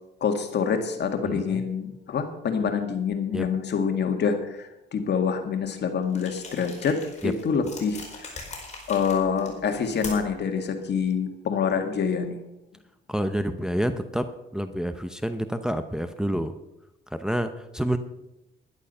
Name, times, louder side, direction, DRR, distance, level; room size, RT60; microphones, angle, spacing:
voice 1, 0.2-8.3 8.9-12.4, left 6 dB, 60° left, 6 dB, 2.0 m, -26 dB
voice 2, 1.3-1.6 3.3-3.5 7.2-7.3 13.1-16.5 17.1-18.0, equal, 5° right, 8 dB, 0.8 m, -28 dB
sound 1, 6.1-10.4, left 3 dB, 35° left, 4.6 m, -42 dB
11.5 x 11.0 x 5.5 m, 0.90 s
cardioid pair, 90°, 20 cm